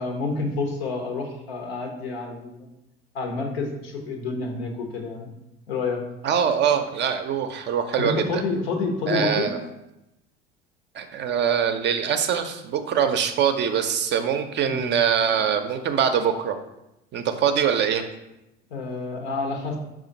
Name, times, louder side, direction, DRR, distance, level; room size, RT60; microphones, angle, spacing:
voice 1, 0.0-2.7 3.1-5.3 5.7-6.0 8.0-9.5 14.6-15.0 18.7-19.8, left 3 dB, 75° left, 2 dB, 0.9 m, -29 dB
voice 2, 6.2-8.4 9.1-9.6 10.9-16.6 17.1-18.0, right 8 dB, 35° right, 7 dB, 0.5 m, -23 dB
5.0 x 2.4 x 3.8 m, 0.90 s
hypercardioid pair, 70°, 31 cm